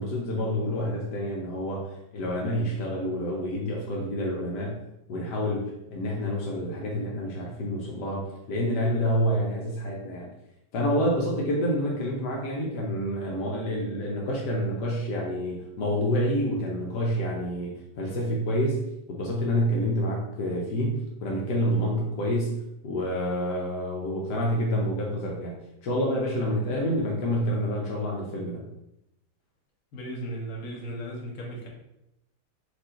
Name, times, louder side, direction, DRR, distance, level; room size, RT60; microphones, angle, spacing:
voice 1, 0.0-4.8 5.1-10.3 10.7-18.8 19.1-22.5 22.8-28.6, equal, 80° left, -2 dB, 1.4 m, -28 dB
voice 2, 29.9-31.7, right 1 dB, 60° left, -2 dB, 1.5 m, -36 dB
4.6 x 2.6 x 4.3 m, 0.85 s
omnidirectional pair, 1.8 m